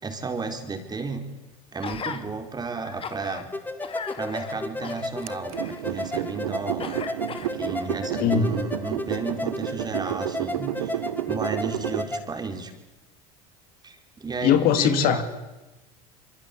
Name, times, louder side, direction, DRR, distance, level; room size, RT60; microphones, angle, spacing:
voice 1, 0.0-1.2 1.7-3.5 4.1-7.0 7.4-12.7 13.8-15.2, right 4 dB, 25° right, 6 dB, 4.3 m, -33 dB
Gasp, 1.8-2.2 2.8-3.4 3.8-6.3 6.8-7.9 8.5-8.6, left 6 dB, 30° left, 2.5 m, -38 dB
sound 1, 3.5-12.3, left 2 dB, 10° left, 2.0 m, -34 dB
sound 2, 5.3-12.0, right 13 dB, 85° right, 1.0 m, -31 dB
voice 2, 8.2-8.5 14.4-15.2, left 9 dB, 55° left, 9 dB, 2.5 m, -20 dB
26.5 x 23.5 x 8.5 m, 1.0 s
hypercardioid pair, 90°, 18 cm